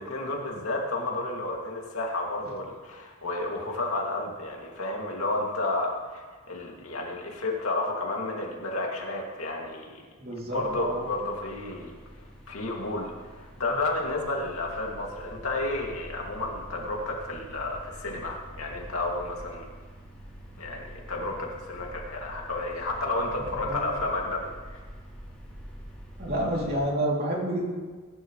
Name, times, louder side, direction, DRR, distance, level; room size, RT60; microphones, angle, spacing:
voice 1, 0.0-10.0 10.5-12.0 12.5-19.7 20.6-24.8, left 2 dB, 75° left, 0 dB, 2.4 m, -31 dB
voice 2, 10.2-11.1 23.4-23.9 26.2-27.7, right 1 dB, 45° right, -2 dB, 3.0 m, -29 dB
sound 1, 10.5-26.8, equal, 5° left, 3.3 m, -46 dB
21.5 x 11.0 x 3.2 m, 1.4 s
head